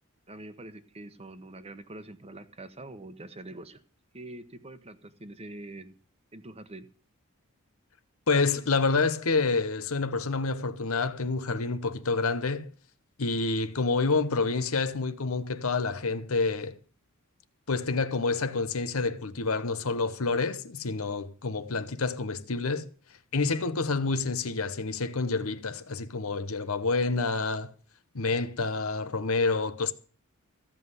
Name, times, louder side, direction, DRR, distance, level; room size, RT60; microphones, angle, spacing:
voice 1, 0.3-3.8 4.1-5.9 6.3-6.9, right 2 dB, 30° right, 1.1 m, -44 dB
voice 2, 8.3-12.7 13.2-16.8 17.7-22.9 23.3-27.7 28.1-29.9, left 3 dB, 70° left, 0.9 m, -28 dB
15.0 x 5.5 x 9.7 m
head